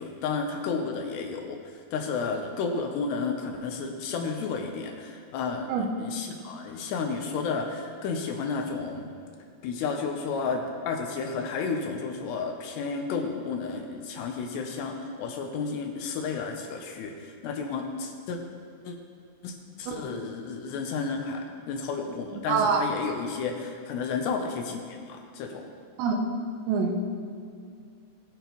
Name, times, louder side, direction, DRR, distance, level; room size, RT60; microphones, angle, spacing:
voice 1, 0.0-9.1 9.6-18.4 18.8-19.0 19.4-25.7, left 4 dB, 75° left, 3 dB, 2.7 m, -32 dB
voice 2, 22.5-22.9 26.0-26.2 26.7-27.1, right 5 dB, 80° right, 3 dB, 2.9 m, -25 dB
20.5 x 8.6 x 3.0 m, 2.2 s
omnidirectional pair, 5.3 m